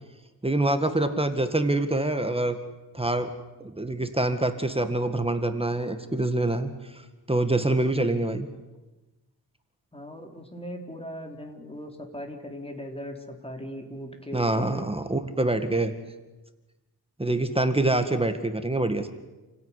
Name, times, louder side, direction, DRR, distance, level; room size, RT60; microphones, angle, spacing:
voice 1, 0.4-2.6 2.9-3.3 3.6-7.0 7.3-8.5 14.3-15.9 17.2-19.1, right 2 dB, 15° right, 8 dB, 1.9 m, -25 dB
voice 2, 9.9-14.9, equal, 15° left, 4 dB, 4.1 m, -39 dB
29.5 x 16.5 x 10.0 m, 1.1 s
wide cardioid pair, 95°, 39 cm